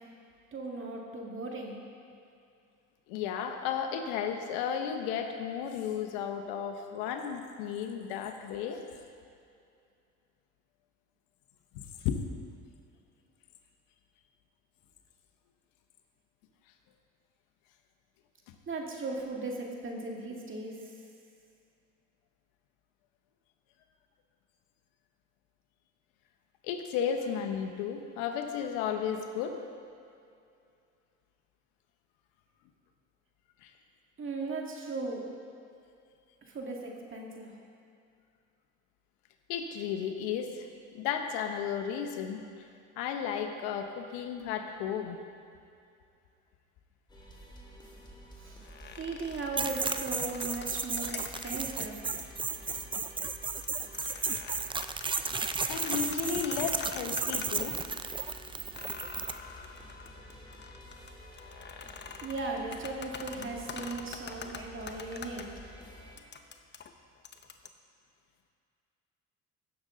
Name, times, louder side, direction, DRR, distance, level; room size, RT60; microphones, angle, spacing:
voice 1, 0.5-1.8 18.7-20.9 34.2-35.2 36.5-37.5 48.4-48.6 49.0-52.0 62.2-65.5, right 3 dB, 40° right, 0 dB, 2.1 m, -37 dB
voice 2, 3.1-8.9 11.7-12.2 26.6-29.6 33.6-33.7 39.5-40.7 40.9-42.7 43.0-45.2 55.7-57.8, left 8 dB, 90° left, 5 dB, 1.0 m, -34 dB
sound 1, 47.1-66.2, equal, 15° left, 2.2 m, -50 dB
sound 2, 48.6-51.8 52.2-52.3 52.8-53.1 53.5-57.9 58.3-58.4 58.7-65.4 66.2-67.7, left 6 dB, 35° left, 0.8 m, -45 dB
sound 3, 49.6-59.4, right 5 dB, 15° right, 0.4 m, -34 dB
16.5 x 6.7 x 3.9 m, 2.5 s
supercardioid pair, 80°, 33 cm